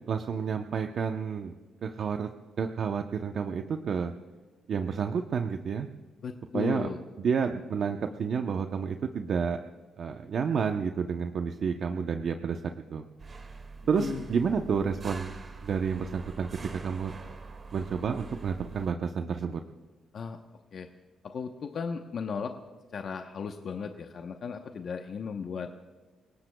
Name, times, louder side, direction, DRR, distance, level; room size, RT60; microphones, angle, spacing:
voice 1, 0.1-1.5 1.8-2.3 2.6-4.1 4.7-5.9 6.5-6.9 7.2-9.6 10.0-12.6 12.9-13.0 13.9-15.3 15.6-17.1 17.7-19.6, right 6 dB, 60° right, 5 dB, 0.8 m, -30 dB
voice 2, 6.2-7.0 14.0-14.2 20.1-20.4 20.7-20.9 21.2-22.5 22.9-25.7, left 6 dB, 60° left, 5 dB, 0.9 m, -36 dB
sound 1, 13.2-18.9, right 4 dB, 40° right, 2.1 m, -44 dB
29.0 x 18.0 x 2.3 m, 1.3 s
cardioid pair, 75°, 0 cm